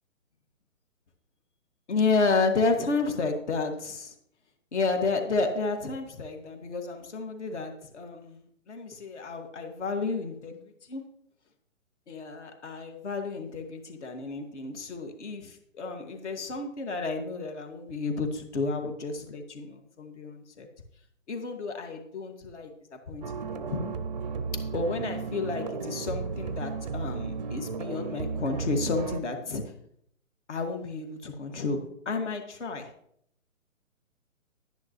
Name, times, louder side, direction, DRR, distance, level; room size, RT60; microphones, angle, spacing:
voice 1, 1.9-4.1 4.7-8.4 8.7-10.6 10.9-11.0 12.1-20.7 21.3-23.9 24.7-29.6 30.5-32.9, left 3 dB, 60° left, 5 dB, 2.1 m, -31 dB
sound 1, 23.2-29.2, right 5 dB, 35° right, 0.5 m, -34 dB
11.0 x 10.0 x 3.1 m, 0.70 s
hypercardioid pair, 140°, 40 cm